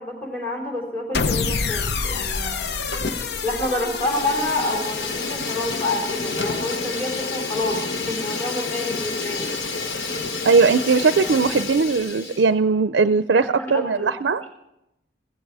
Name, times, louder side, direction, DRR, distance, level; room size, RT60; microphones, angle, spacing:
voice 1, 0.0-2.7 3.4-9.6 13.3-14.1, left 2 dB, 10° left, 0 dB, 3.7 m, -28 dB
sound 1, 1.1-7.5, left 4 dB, 60° left, 0.7 m, -29 dB
Fire, 2.9-3.4 3.7-12.5, left 3 dB, 75° left, 1.3 m, -29 dB
voice 2, 10.4-14.4, right 4 dB, 75° right, 12 dB, 0.5 m, -19 dB
16.0 x 15.5 x 4.8 m, 0.88 s
head